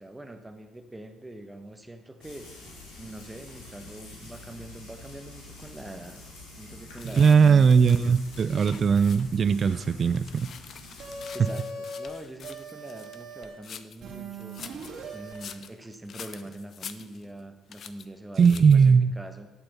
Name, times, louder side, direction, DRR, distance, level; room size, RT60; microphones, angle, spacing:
voice 1, 0.0-2.5 3.0-6.2 6.5-7.7 11.3-14.6 15.1-19.5, right 1 dB, 15° right, 7 dB, 1.0 m, -43 dB
Frying (food), 2.2-11.3, left 2 dB, 80° left, 2.4 m, -47 dB
sound 1, 7.0-9.5 9.9-14.0 14.4-17.4 17.7-18.1 18.4-18.9, left 7 dB, 55° left, 0.5 m, -46 dB
voice 2, 7.1-10.5 18.4-19.2, right 6 dB, 45° right, 14 dB, 0.4 m, -19 dB
sound 2, 11.0-12.1 12.4-13.5 14.0-15.4, right 1 dB, 65° right, 2.5 m, -39 dB
12.0 x 4.4 x 5.4 m, 1.1 s
hypercardioid pair, 55°, 0 cm